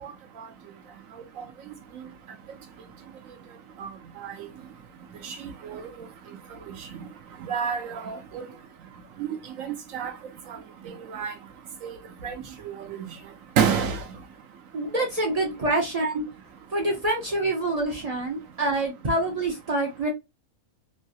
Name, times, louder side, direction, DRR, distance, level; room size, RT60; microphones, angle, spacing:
voice 1, 5.2-5.8 7.4-8.4 9.2-9.3 9.6-10.1 11.1-11.3 11.8-12.0 12.2-12.3 12.9-13.0 13.6-14.0, right 7 dB, 75° right, 1.0 m, -28 dB
voice 2, 14.7-16.2 16.7-20.1, right 2 dB, 45° right, 0.5 m, -26 dB
3.1 x 2.3 x 2.6 m
omnidirectional pair, 1.5 m